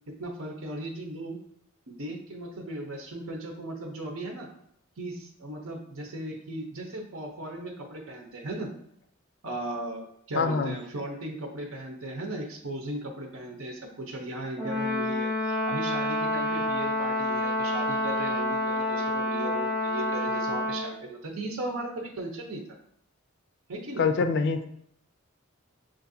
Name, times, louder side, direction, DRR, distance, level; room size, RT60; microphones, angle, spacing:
voice 1, 0.1-1.4 1.9-4.5 5.0-8.7 9.4-22.6 23.7-24.0, right 1 dB, 85° right, 1 dB, 0.8 m, -37 dB
voice 2, 10.3-10.8 24.0-24.7, left 4 dB, 55° left, 9 dB, 0.4 m, -25 dB
Brass instrument, 14.6-21.0, left 1 dB, 5° right, 0.7 m, -28 dB
6.7 x 2.6 x 2.6 m, 0.71 s
head